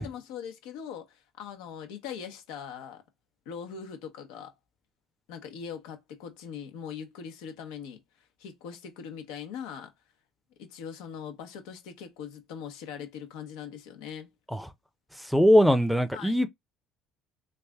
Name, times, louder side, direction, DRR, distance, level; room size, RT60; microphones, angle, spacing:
voice 1, 0.0-3.0 3.5-4.5 5.3-8.0 8.4-9.9 10.6-14.3 16.1-16.3, left 7 dB, 85° left, 1.0 m, -41 dB
voice 2, 15.2-16.5, equal, ahead, 0.6 m, -21 dB
3.3 x 2.5 x 3.5 m
supercardioid pair, 90°, 0 cm